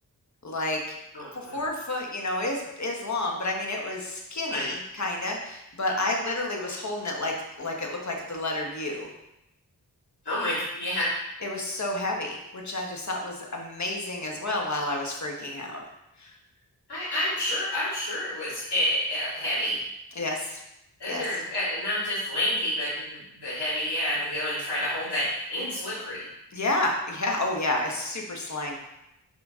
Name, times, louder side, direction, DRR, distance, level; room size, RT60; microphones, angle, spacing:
voice 1, 0.4-1.0 1.5-9.1 11.4-15.8 16.2-16.3 20.1-20.6 21.1-21.2 26.5-28.8, left 2 dB, 45° left, 0 dB, 1.4 m, -30 dB
voice 2, 1.1-1.6 4.5-4.7 10.2-11.1 16.9-19.8 21.0-26.3, left 1 dB, 80° left, -11 dB, 2.5 m, -29 dB
6.4 x 4.9 x 3.7 m, 0.86 s
cardioid pair, 40°, 39 cm